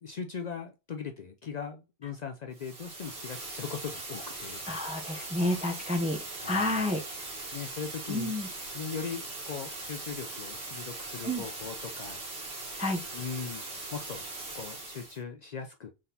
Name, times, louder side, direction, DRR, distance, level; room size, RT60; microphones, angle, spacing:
voice 1, 0.0-4.6 6.4-6.9 7.5-8.4 8.7-12.2 13.1-14.2 14.5-15.9, left 6 dB, 55° left, 0.5 m, -39 dB
sound 1, 2.5-15.2, right 2 dB, 85° right, 1.7 m, -40 dB
voice 2, 4.7-7.0 8.1-8.5 11.2-11.4 12.8-13.0, left 1 dB, 10° right, 0.4 m, -30 dB
3.9 x 3.7 x 2.7 m
omnidirectional pair, 1.1 m